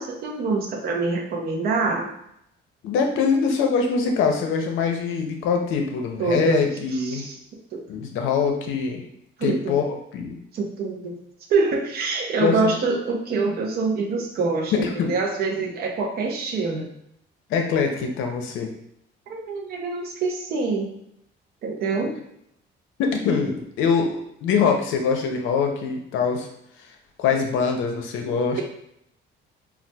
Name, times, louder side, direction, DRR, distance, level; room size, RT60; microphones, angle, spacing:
voice 1, 0.0-2.1 6.2-6.6 7.0-7.4 7.7-7.8 9.4-9.8 10.5-11.2 11.5-16.9 19.3-20.9 21.6-22.2, right 4 dB, 55° right, 0 dB, 0.6 m, -25 dB
voice 2, 2.8-7.2 7.9-9.0 9.4-10.4 12.4-12.7 14.7-15.1 17.5-18.7 23.0-26.5 27.2-28.6, left 5 dB, 85° left, 3 dB, 0.6 m, -23 dB
4.0 x 2.3 x 2.2 m, 0.75 s
cardioid pair, 150°, 20 cm